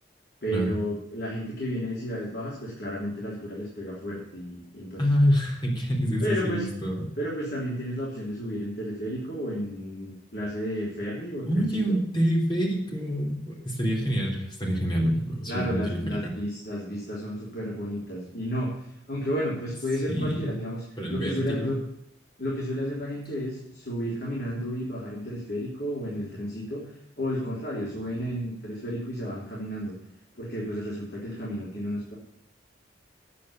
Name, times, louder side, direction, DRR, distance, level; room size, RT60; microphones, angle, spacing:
voice 1, 0.4-5.1 6.2-6.7 7.2-12.0 15.5-20.8 21.1-21.8 22.4-26.9 27.2-29.9 30.4-32.1, equal, 55° left, -5 dB, 3.5 m, -32 dB
voice 2, 5.0-7.1 11.5-16.3 20.1-20.5 21.0-21.7, equal, 25° left, -1 dB, 3.4 m, -26 dB
9.7 x 8.6 x 8.7 m, 0.77 s
head